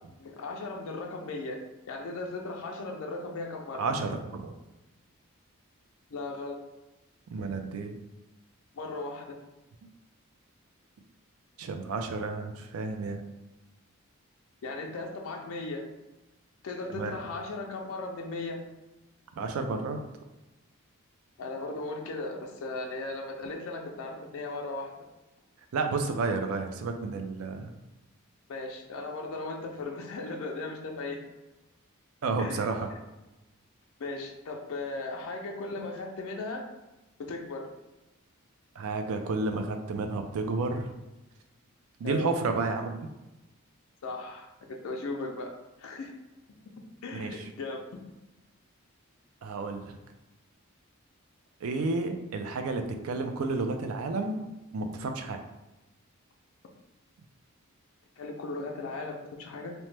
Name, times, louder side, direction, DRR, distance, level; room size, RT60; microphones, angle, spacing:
voice 1, 0.2-1.6 1.9-3.8 6.1-6.6 8.7-9.4 14.6-15.8 16.6-18.6 21.4-24.9 28.5-31.2 32.4-32.7 34.0-36.7 37.2-37.7 42.0-42.3 44.0-44.5 44.8-45.5 45.8-46.1 47.0-47.8 58.2-59.7, left 3 dB, 70° left, 2 dB, 0.4 m, -37 dB
voice 2, 3.8-4.5 7.3-7.9 11.6-13.2 16.9-17.1 19.4-20.0 25.7-27.7 32.2-32.9 38.8-41.0 42.0-43.1 47.1-47.5 49.4-50.0 51.6-54.4 54.7-55.4, right 3 dB, 75° right, 6 dB, 0.4 m, -31 dB
2.9 x 2.1 x 3.2 m, 1.0 s
head